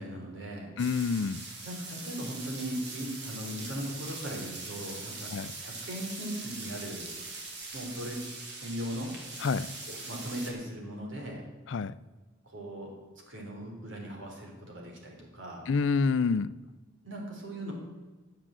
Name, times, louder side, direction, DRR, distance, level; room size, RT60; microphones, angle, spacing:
voice 1, 0.0-0.7 1.6-7.1 7.7-8.2 8.5-9.1 9.9-11.4 12.4-12.9 13.3-15.7 17.0-17.7, equal, 80° right, 3.4 m, -38 dB
voice 2, 0.8-1.4 5.3-5.5 9.4-9.8 11.7-12.0 15.7-16.6, left 5 dB, 75° left, 0.4 m, -28 dB
sound 1, 0.8-10.5, right 3 dB, 60° right, 2.4 m, -42 dB
11.0 x 7.4 x 7.5 m
head